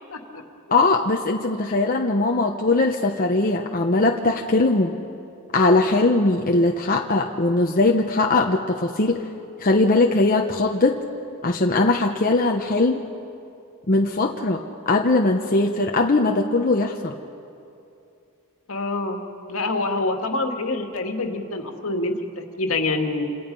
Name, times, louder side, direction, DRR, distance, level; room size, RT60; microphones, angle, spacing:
voice 1, 0.1-0.4 18.7-19.2 19.5-22.1 22.6-23.3, left 2 dB, 70° left, 3 dB, 2.2 m, -26 dB
voice 2, 0.7-5.0 5.5-9.2 9.6-11.0 11.4-13.0 13.9-14.6 14.9-17.1, left 2 dB, 40° left, 2 dB, 1.0 m, -20 dB
28.0 x 27.5 x 5.5 m, 2.6 s
head